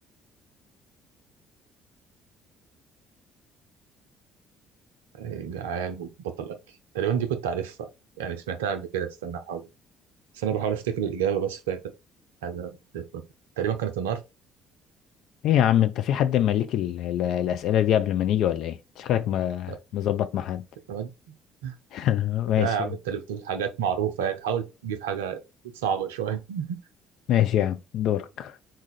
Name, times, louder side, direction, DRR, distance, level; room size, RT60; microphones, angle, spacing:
voice 1, 5.1-6.6 6.9-7.9 8.2-9.6 10.3-11.8 12.4-13.2 13.6-14.2 19.7-19.8 20.9-21.1 21.6-21.8 22.6-25.4 25.7-26.8, right 8 dB, 70° right, 0.5 m, -29 dB
voice 2, 15.4-20.6 21.9-22.9 27.3-28.6, left 11 dB, 55° left, 0.4 m, -24 dB
3.9 x 2.5 x 4.0 m
figure-of-eight pair, 50°, 0 cm